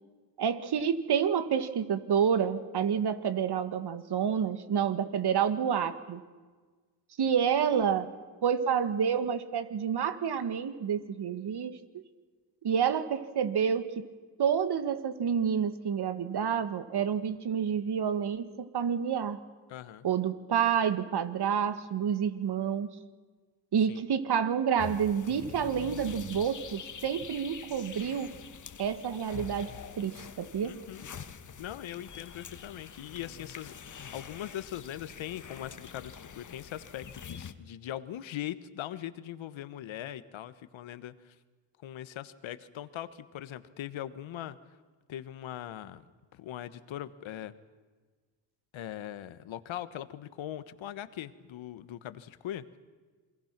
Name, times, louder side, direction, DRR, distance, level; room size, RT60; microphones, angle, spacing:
voice 1, 0.4-6.2 7.2-8.1 8.4-11.7 12.6-14.0 14.4-19.4 20.0-22.9 23.7-28.3 28.8-29.7 30.0-30.8, right 7 dB, 50° right, 11 dB, 2.0 m, -29 dB
voice 2, 19.7-20.0 23.9-24.0 30.6-31.1 31.6-41.3 41.8-44.6 45.1-46.0 46.3-47.5 48.7-52.8, left 12 dB, 65° left, 13 dB, 1.5 m, -41 dB
sound 1, 24.8-37.5, left 7 dB, 35° left, 1.5 m, -45 dB
27.5 x 22.5 x 6.1 m, 1.4 s
cardioid pair, 80°, 50 cm